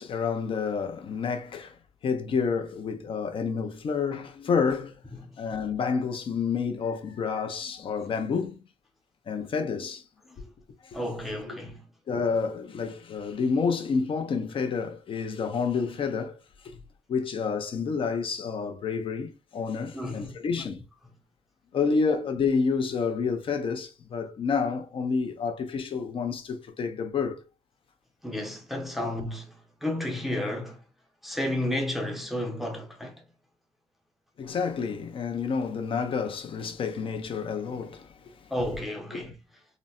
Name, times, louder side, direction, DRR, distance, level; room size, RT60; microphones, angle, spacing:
voice 1, 0.0-1.8 2.0-4.9 5.4-8.7 9.3-10.0 11.5-11.6 12.1-16.4 16.6-16.8 17.1-20.8 21.7-27.4 29.0-29.1 34.4-38.5 39.1-39.3, left 5 dB, 50° left, 0.6 m, -29 dB
voice 2, 10.9-11.8 19.9-20.4 22.1-22.2 28.2-29.5 29.8-30.8 31.2-33.1 38.5-39.4, left 1 dB, ahead, 0.6 m, -32 dB
3.9 x 2.1 x 2.3 m
cardioid pair, 140°, 12 cm